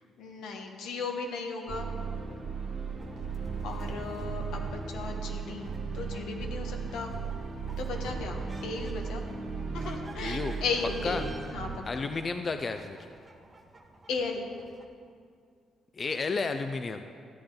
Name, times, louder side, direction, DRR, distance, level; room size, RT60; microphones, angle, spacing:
voice 1, 0.2-1.9 3.6-7.1 7.8-9.3 9.7-11.7 12.0-12.1 14.1-14.5, left 4 dB, 85° left, 3 dB, 1.2 m, -36 dB
sound 1, 1.7-11.8, right 5 dB, 60° right, 1.6 m, -36 dB
sound 2, 3.0-14.9, right 2 dB, 25° right, 1.1 m, -52 dB
voice 2, 10.2-10.5 11.0-11.3 11.9-13.0 15.9-17.0, left 4 dB, 40° left, 8 dB, 0.5 m, -32 dB
13.5 x 8.6 x 3.9 m, 2.2 s
cardioid pair, 90°, 0 cm